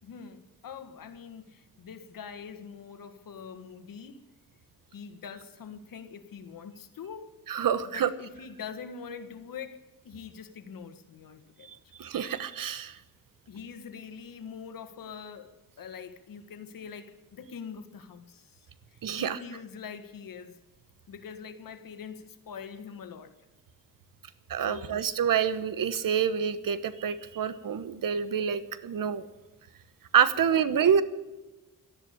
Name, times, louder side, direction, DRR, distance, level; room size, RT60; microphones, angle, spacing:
voice 1, 0.0-4.2 4.9-7.4 7.8-11.9 13.5-20.6 21.1-23.3 24.6-25.0 30.8-30.9, left 6 dB, 80° left, 1.6 m, -44 dB
voice 2, 7.5-8.1 12.0-13.0 19.0-19.4 24.5-29.2 30.1-31.0, right 8 dB, 75° right, 1.2 m, -27 dB
13.5 x 11.0 x 8.5 m
cardioid pair, 85°, 34 cm